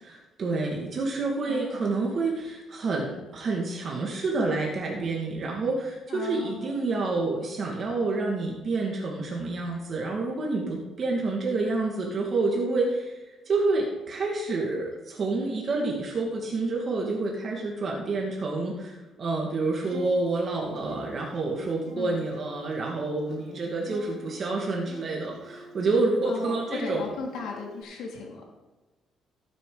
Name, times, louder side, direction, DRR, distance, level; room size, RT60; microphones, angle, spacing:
voice 1, 0.0-13.2 13.5-27.0, right 3 dB, 40° right, -1 dB, 2.0 m, -28 dB
voice 2, 1.5-2.0 6.1-6.7 21.9-22.2 26.2-28.4, left 4 dB, 85° left, 0 dB, 2.6 m, -36 dB
Acoustic guitar, 19.8-27.8, right 3 dB, 70° right, 3.6 m, -48 dB
16.0 x 9.3 x 4.0 m, 1.1 s
cardioid pair, 130°, 0 cm